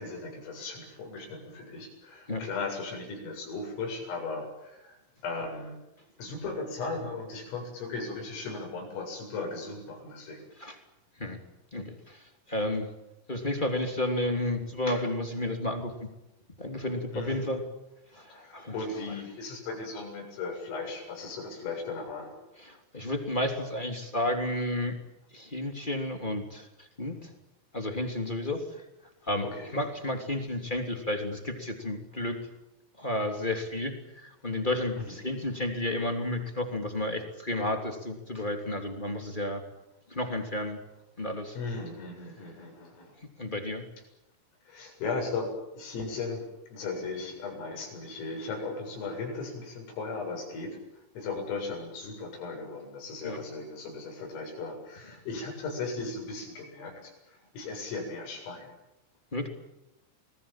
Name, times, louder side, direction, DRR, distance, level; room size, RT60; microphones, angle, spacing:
voice 1, 0.0-5.8 6.2-10.5 17.1-17.5 18.3-22.3 29.4-29.7 35.0-35.2 41.5-43.1 44.6-45.5 45.7-46.4 46.7-50.8 51.1-58.7, left 3 dB, 80° left, 2 dB, 10.0 m, -37 dB
voice 2, 11.7-12.9 13.3-16.1 16.6-17.6 18.1-18.7 22.6-25.0 25.3-27.3 27.7-28.8 29.3-32.4 33.0-39.6 40.1-40.8 41.2-41.6 43.4-43.8 53.2-53.4 59.3-59.5, left 1 dB, 15° left, 5 dB, 1.9 m, -32 dB
28.5 x 20.5 x 8.9 m, 0.94 s
omnidirectional pair, 5.8 m